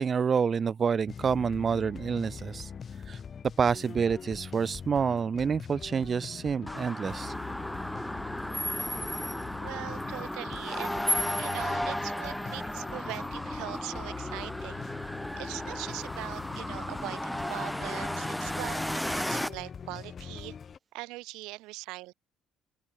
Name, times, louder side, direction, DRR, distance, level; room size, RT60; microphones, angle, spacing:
voice 1, 0.0-2.7 3.1-3.2 3.6-7.3, right 6 dB, 35° right, 1.2 m, -28 dB
sound 1, 1.1-20.8, left 6 dB, 40° left, 1.5 m, -43 dB
sound 2, 6.7-19.5, equal, 5° left, 1.3 m, -34 dB
voice 2, 9.6-11.0 11.4-14.9 15.4-20.6 20.9-22.1, right 21 dB, 85° right, 6.0 m, -41 dB
open air
cardioid pair, 95°, 0 cm